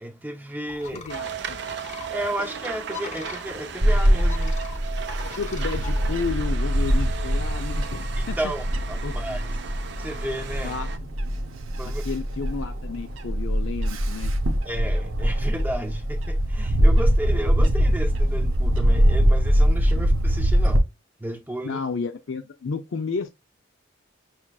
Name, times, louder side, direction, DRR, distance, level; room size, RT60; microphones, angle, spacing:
voice 1, 0.0-1.1 2.1-4.5 8.2-9.5 10.0-10.7 11.8-12.0 14.6-20.9 21.2-21.8, right 1 dB, 10° right, 0.5 m, -33 dB
sound 1, 0.7-6.3, left 4 dB, 35° left, 0.8 m, -42 dB
voice 2, 0.9-1.6 5.3-8.4 9.0-9.2 10.6-10.9 12.1-14.3 21.6-23.3, left 5 dB, 70° left, 0.5 m, -31 dB
sound 2, 1.1-11.0, right 7 dB, 55° right, 0.5 m, -37 dB
Bird / Wind, 3.8-20.8, equal, 90° right, 0.8 m, -22 dB
6.0 x 3.1 x 2.3 m
head